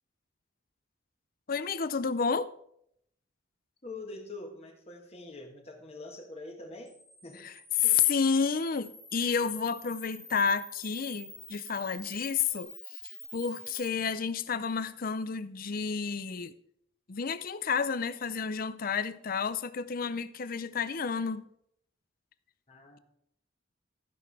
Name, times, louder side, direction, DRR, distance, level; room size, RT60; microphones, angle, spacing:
voice 1, 1.5-2.5 7.8-12.7 13.0-16.5 17.1-21.5, left 6 dB, 45° left, 0.5 m, -30 dB
voice 2, 3.8-6.9 7.2-7.5 7.8-8.1 22.7-23.0, left 2 dB, 30° left, 1.5 m, -44 dB
Camera, 6.9-13.9, left 1 dB, ahead, 1.1 m, -48 dB
14.0 x 5.9 x 4.7 m
head